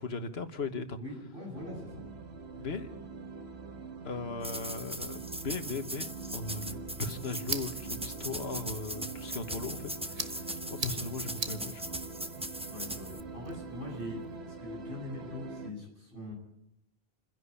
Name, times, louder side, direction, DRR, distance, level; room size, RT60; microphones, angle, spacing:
voice 1, 0.0-1.0 2.5-2.9 4.0-6.1 6.3-10.4 10.7-11.9, left 3 dB, 80° left, 9 dB, 1.6 m, -38 dB
voice 2, 1.0-2.1 12.7-14.2 14.6-16.3, left 1 dB, 60° right, -1 dB, 8.4 m, -42 dB
sound 1, 1.5-15.7, right 3 dB, 85° right, 1.6 m, -44 dB
sound 2, 4.4-13.2, right 1 dB, 5° right, 0.8 m, -40 dB
sound 3, 6.5-14.4, right 4 dB, 40° right, 1.1 m, -44 dB
28.0 x 11.0 x 8.4 m, 0.82 s
omnidirectional pair, 1.0 m